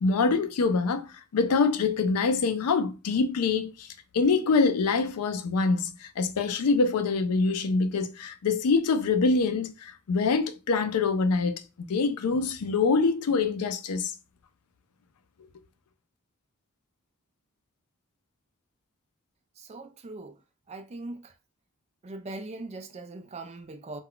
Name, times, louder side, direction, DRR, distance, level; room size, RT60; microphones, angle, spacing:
voice 1, 0.0-3.9 4.1-14.1, left 4 dB, 85° left, 0.4 m, -25 dB
voice 2, 19.6-20.4 20.7-21.3 22.0-24.0, right 2 dB, 30° right, 0.3 m, -40 dB
2.2 x 2.2 x 3.7 m
head